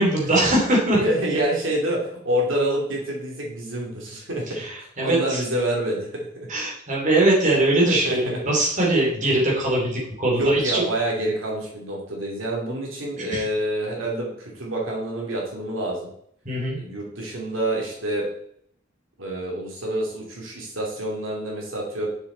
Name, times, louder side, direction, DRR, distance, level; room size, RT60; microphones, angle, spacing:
voice 1, 0.0-1.0 4.5-5.4 6.5-10.8 13.2-13.5 16.4-16.8, right 1 dB, 40° right, -3 dB, 2.9 m, -21 dB
voice 2, 1.0-4.5 4.8-6.5 7.9-8.4 10.2-16.1 16.8-18.3 19.2-22.1, right 1 dB, 70° right, -2 dB, 2.7 m, -27 dB
6.8 x 6.8 x 3.9 m, 0.67 s
head